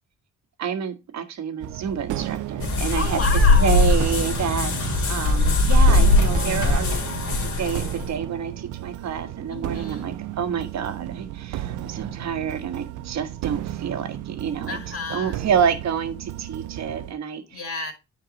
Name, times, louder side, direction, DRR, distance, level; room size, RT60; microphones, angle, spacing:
voice 1, 0.6-3.2 3.6-4.7 5.1-7.0 7.4-14.8 15.1-17.6, right 7 dB, 60° right, 8 dB, 1.4 m, -28 dB
sound 1, 1.6-17.1, right 13 dB, 80° right, 0.6 m, -34 dB
sound 2, 2.6-8.1, left 2 dB, 75° left, 2.4 m, -20 dB
voice 2, 3.0-3.9 9.5-10.1 14.7-15.4 17.5-17.9, left 3 dB, 50° left, 4 dB, 2.3 m, -31 dB
9.8 x 4.6 x 4.0 m, 0.26 s
cardioid pair, 90°, 30 cm